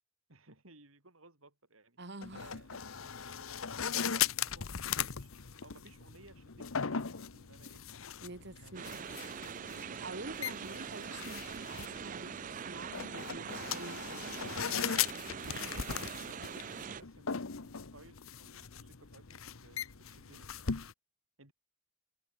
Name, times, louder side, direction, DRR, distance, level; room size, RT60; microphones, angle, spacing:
voice 1, 0.3-2.0 2.3-4.7 5.1-7.9 8.6-8.9 15.6-20.8 21.4-21.5, right 2 dB, 85° right, 5.6 m, -60 dB
voice 2, 2.0-2.5 8.2-9.0 9.7-14.3, right 2 dB, 60° right, 2.2 m, -47 dB
sound 1, 2.2-20.9, left 7 dB, 90° left, 1.1 m, -39 dB
sound 2, 8.7-17.0, right 7 dB, 40° right, 0.4 m, -43 dB
head